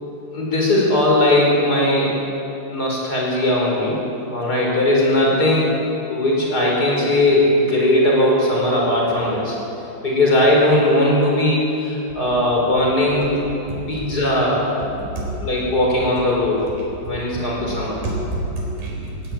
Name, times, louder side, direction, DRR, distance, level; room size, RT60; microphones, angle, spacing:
voice 1, 0.3-2.1 2.7-4.0 4.3-5.7 6.1-9.5 10.0-13.4 13.9-14.7 15.4-16.6 17.0-18.0, left 1 dB, 30° left, -3 dB, 5.3 m, -18 dB
voice 2, 13.7-14.1 15.2-15.3 17.7-19.3, right 1 dB, 85° right, -2 dB, 5.9 m, -28 dB
17.5 x 17.5 x 9.0 m, 2.9 s
omnidirectional pair, 3.7 m